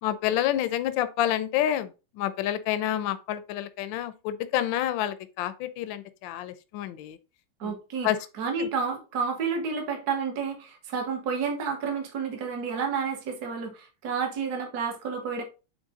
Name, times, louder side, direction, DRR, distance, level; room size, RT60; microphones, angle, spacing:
voice 1, 0.0-7.2 7.6-7.7 8.0-8.2 8.6-8.7, left 12 dB, 75° left, 1.3 m, -28 dB
voice 2, 7.6-8.1 8.4-15.4, right 5 dB, 50° right, 1.8 m, -30 dB
8.1 x 3.4 x 3.7 m
omnidirectional pair, 2.3 m